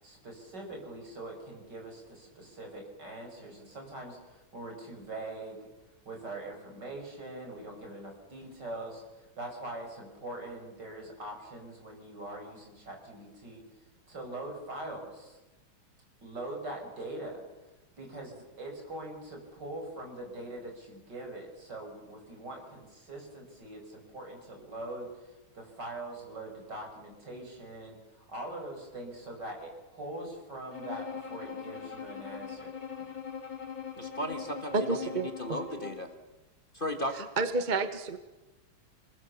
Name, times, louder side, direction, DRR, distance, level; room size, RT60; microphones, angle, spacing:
voice 1, 0.0-5.6 6.0-9.0 9.4-13.6 14.1-15.4 16.2-17.4 18.0-32.7, right 1 dB, 60° right, 2 dB, 6.5 m, -42 dB
Bowed string instrument, 30.7-36.1, left 6 dB, 75° left, 3.7 m, -41 dB
voice 2, 34.0-35.1 35.4-36.1 36.7-37.3, equal, 30° left, 5 dB, 1.8 m, -35 dB
voice 3, 34.7-35.3 37.1-38.2, right 3 dB, 30° right, 10 dB, 0.9 m, -30 dB
29.5 x 20.5 x 7.2 m, 1.1 s
omnidirectional pair, 2.1 m